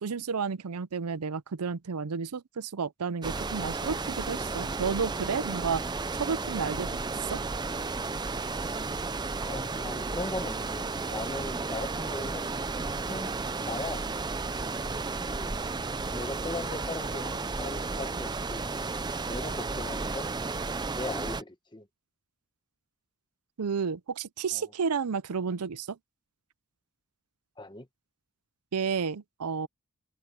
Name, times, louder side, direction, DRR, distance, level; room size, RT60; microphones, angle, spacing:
voice 1, 0.0-5.8 6.2-6.9 7.2-7.4 23.6-26.0 28.7-29.7, right 5 dB, 85° right, 0.6 m, -31 dB
sound 1, 3.2-21.4, right 3 dB, 20° right, 0.5 m, -33 dB
voice 2, 9.5-12.5 13.1-13.3 13.7-14.0 15.4-15.6 16.1-18.7 19.3-20.3 20.9-21.9 24.5-24.6 27.6-27.9, left 2 dB, 20° left, 1.2 m, -38 dB
head